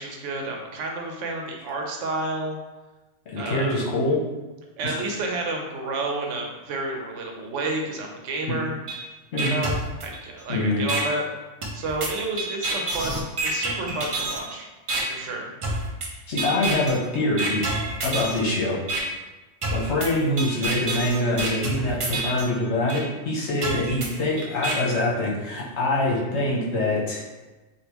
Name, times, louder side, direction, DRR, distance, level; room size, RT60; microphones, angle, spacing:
voice 1, 0.0-2.6 3.4-3.8 4.8-8.7 9.4-11.2 11.7-14.7 15.1-15.5, right 2 dB, 90° right, 1 dB, 1.0 m, -30 dB
voice 2, 3.3-4.2 4.8-4.9 8.5-8.6 9.3-9.6 10.5-10.8 16.3-17.6 18.0-18.8 19.7-27.2, left 1 dB, 70° left, -5 dB, 1.1 m, -24 dB
sound 1, 8.9-9.0 9.4-10.4 10.9-11.0 11.6-14.4 14.9-15.0 15.6-16.1 16.4-16.9 17.4-18.4 18.9-19.0 19.6-22.4 22.9-23.0 23.6-24.7, right 2 dB, 60° right, 0.3 m, -28 dB
3.4 x 2.5 x 2.9 m, 1.2 s
omnidirectional pair, 1.2 m